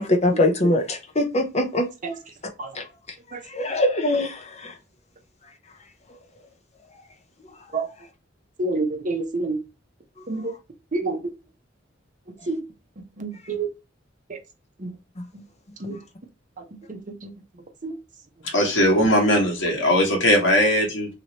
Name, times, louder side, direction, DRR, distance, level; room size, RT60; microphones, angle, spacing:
voice 1, 0.0-1.9 2.7-2.8 3.3-4.8 15.2-15.3, left 1 dB, 35° left, 0.7 m, -23 dB
voice 2, 8.6-9.6 10.3-10.5 10.9-11.2 12.5-12.6 13.2-13.7 14.3-14.4 14.8-14.9 15.8-16.0 16.6-17.3 17.8-17.9, right 3 dB, 45° right, 0.7 m, -28 dB
voice 3, 18.5-21.1, equal, 70° left, 1.4 m, -19 dB
3.0 x 2.9 x 2.8 m
head